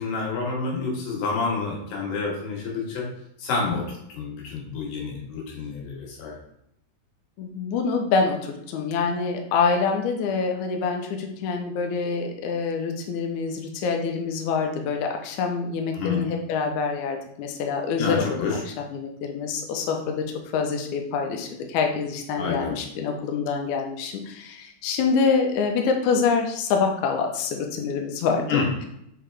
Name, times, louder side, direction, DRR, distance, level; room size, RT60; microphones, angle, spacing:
voice 1, 0.0-3.1 3.4-6.4 15.9-16.2 18.0-18.6 22.4-22.8 28.5-28.6, left 4 dB, 90° left, -2 dB, 3.5 m, -28 dB
voice 2, 7.4-18.6 18.9-28.9, left 5 dB, 75° left, 2 dB, 2.0 m, -26 dB
6.9 x 4.3 x 3.5 m, 0.76 s
omnidirectional pair, 4.0 m